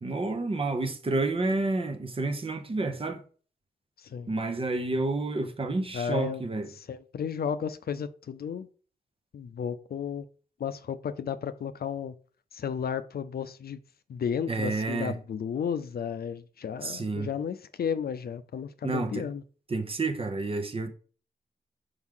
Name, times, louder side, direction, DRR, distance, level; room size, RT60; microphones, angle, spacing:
voice 1, 0.0-3.2 4.3-6.7 14.5-15.1 16.8-17.3 18.8-19.2 19.7-20.9, right 3 dB, 35° right, 0.8 m, -29 dB
voice 2, 5.9-6.4 6.7-8.7 9.3-10.3 10.6-12.2 12.5-13.8 14.1-19.4, left 7 dB, 75° left, 0.5 m, -33 dB
6.2 x 4.9 x 3.7 m
wide cardioid pair, 145°, 16 cm